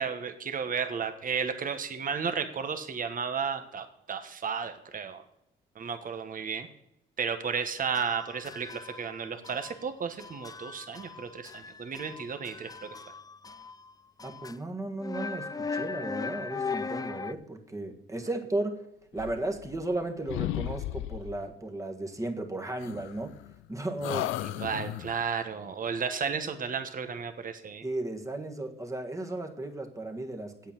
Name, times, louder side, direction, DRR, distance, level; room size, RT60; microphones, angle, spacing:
voice 1, 0.0-5.2 5.7-6.7 7.2-12.9 24.4-27.9, right 6 dB, 45° right, 8 dB, 1.3 m, -33 dB
sound 1, 7.9-9.2 9.4-9.9 10.2-13.9 14.2-14.6 15.0-17.3, left 5 dB, 20° left, 0.4 m, -38 dB
voice 2, 14.2-18.8 19.1-23.3 23.7-24.3 27.8-30.7, right 2 dB, 15° right, 4 dB, 1.7 m, -35 dB
sound 2, 19.1-20.0 20.3-21.5 22.8-23.6 24.0-25.3, left 15 dB, 90° left, 0.4 m, -35 dB
8.3 x 8.2 x 7.4 m, 0.79 s
cardioid pair, 90°, 20 cm